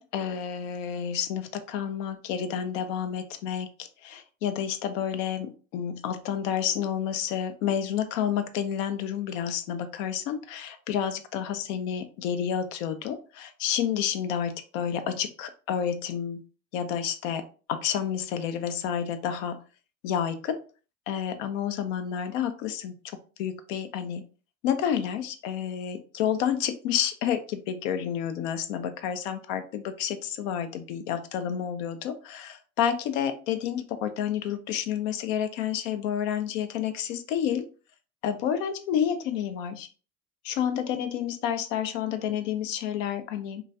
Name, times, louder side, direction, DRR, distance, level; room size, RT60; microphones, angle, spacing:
voice 1, 0.0-3.7 4.0-16.4 16.7-17.4 17.7-19.6 20.0-20.6 21.1-22.9 23.4-24.2 24.6-37.6 38.2-39.9 40.4-43.6, left 9 dB, 80° left, 9 dB, 0.5 m, -30 dB
3.0 x 2.3 x 2.6 m, 0.36 s
hypercardioid pair, 65°, 38 cm